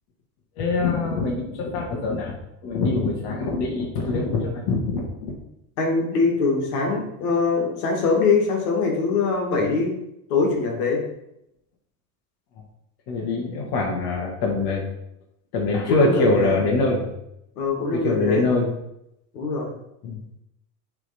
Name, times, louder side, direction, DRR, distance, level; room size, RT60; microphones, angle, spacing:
voice 1, 0.6-2.3 2.6-5.3 13.1-14.8 15.5-17.1 17.9-18.7 20.0-20.2, left 3 dB, 55° left, -1 dB, 1.7 m, -24 dB
voice 2, 5.8-9.9 10.3-11.1 15.9-16.6 17.6-18.4 19.3-19.7, left 4 dB, 75° left, 0 dB, 2.1 m, -23 dB
8.9 x 3.7 x 4.2 m, 0.82 s
hypercardioid pair, 90°, 46 cm